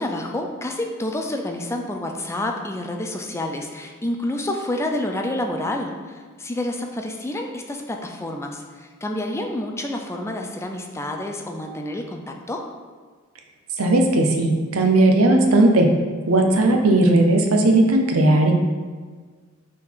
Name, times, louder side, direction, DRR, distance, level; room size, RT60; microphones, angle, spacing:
voice 1, 0.0-12.6, left 1 dB, 15° left, 2 dB, 0.5 m, -28 dB
voice 2, 13.8-15.9 16.3-18.5, right 2 dB, 90° right, 3 dB, 0.8 m, -17 dB
6.1 x 3.8 x 4.6 m, 1.5 s
head